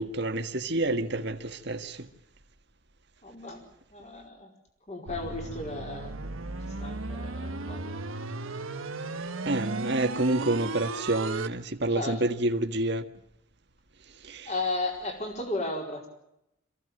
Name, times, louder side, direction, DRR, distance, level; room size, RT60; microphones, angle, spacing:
voice 1, 0.0-1.4 1.7-2.0 9.5-13.0, right 2 dB, 55° right, 1.7 m, -28 dB
voice 2, 3.2-3.6 3.9-4.5 4.9-6.1 6.8-8.0 11.9-12.2 14.5-16.1, left 2 dB, 35° left, 4.6 m, -34 dB
sound 1, 5.1-11.5, right 3 dB, 85° right, 1.3 m, -35 dB
26.5 x 16.0 x 7.8 m
head